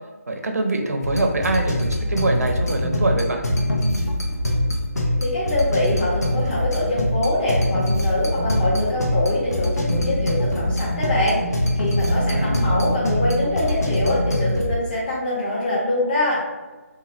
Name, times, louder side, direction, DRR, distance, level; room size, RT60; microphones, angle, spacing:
voice 1, 0.3-3.4 12.3-12.7, right 2 dB, 75° right, 3 dB, 0.5 m, -24 dB
sound 1, 1.0-14.7, left 1 dB, 85° left, 0.7 m, -23 dB
voice 2, 5.2-16.4, left 1 dB, 35° left, -6 dB, 1.1 m, -24 dB
2.9 x 2.2 x 3.0 m, 1.2 s
figure-of-eight pair, 155°, 8 cm